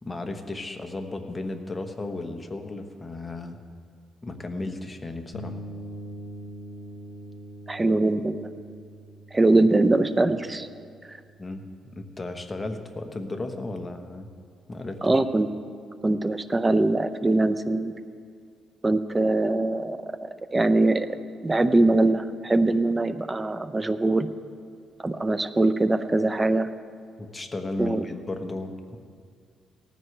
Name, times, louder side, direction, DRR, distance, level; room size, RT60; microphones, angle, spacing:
voice 1, 0.0-3.6 4.2-5.6 11.4-11.6 11.9-14.3 14.7-15.2 27.2-29.0, left 2 dB, 20° left, 5 dB, 1.3 m, -34 dB
sound 1, 5.3-13.1, right 1 dB, 80° left, 1.4 m, -44 dB
voice 2, 7.7-8.5 9.3-10.7 11.1-11.2 15.0-15.5 16.0-17.9 18.8-21.1 21.4-24.3 25.0-26.7 27.8-28.0, right 2 dB, 20° right, 12 dB, 0.6 m, -22 dB
18.5 x 14.5 x 3.4 m, 2.2 s
cardioid pair, 90°, 0 cm